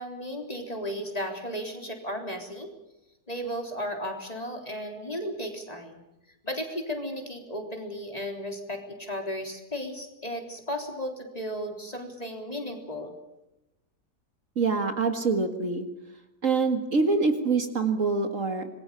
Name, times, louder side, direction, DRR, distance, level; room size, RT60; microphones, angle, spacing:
voice 1, 0.0-2.7 3.3-6.0 6.4-13.1, equal, 25° left, 3 dB, 3.9 m, -35 dB
voice 2, 14.6-15.9 16.4-18.7, right 4 dB, 55° right, 7 dB, 2.1 m, -25 dB
26.5 x 21.0 x 6.9 m, 0.94 s
omnidirectional pair, 1.7 m